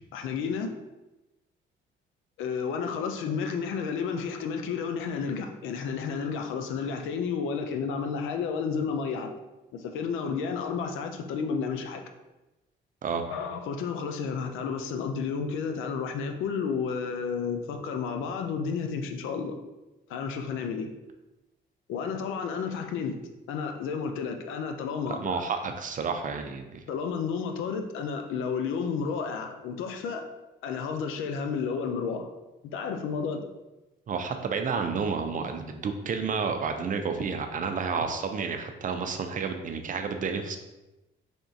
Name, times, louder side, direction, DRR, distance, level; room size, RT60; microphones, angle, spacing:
voice 1, 0.1-0.7 2.4-9.3 9.7-12.0 13.3-19.6 20.1-20.9 21.9-23.2 23.5-25.4 26.9-30.2 30.6-32.3 32.7-33.4, left 6 dB, 90° left, 5 dB, 0.5 m, -31 dB
voice 2, 25.1-26.8 34.1-40.6, right 5 dB, 40° right, 6 dB, 0.5 m, -30 dB
3.5 x 2.4 x 4.0 m, 1.0 s
cardioid pair, 90°, 20 cm